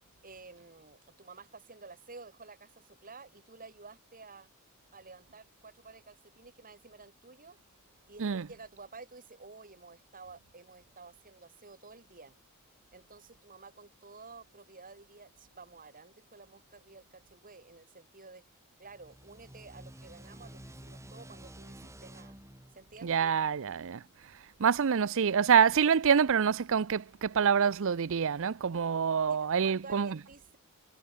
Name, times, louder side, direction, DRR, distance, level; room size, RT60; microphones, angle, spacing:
voice 1, 0.2-4.5 4.9-7.6 8.1-12.3 12.9-18.4 18.8-22.4 22.7-23.3 29.3-30.6, right 4 dB, 40° right, 4.5 m, -52 dB
sound 1, 18.8-24.1, right 1 dB, 15° right, 1.9 m, -51 dB
voice 2, 23.0-24.0 24.6-30.2, right 7 dB, 65° right, 0.5 m, -26 dB
head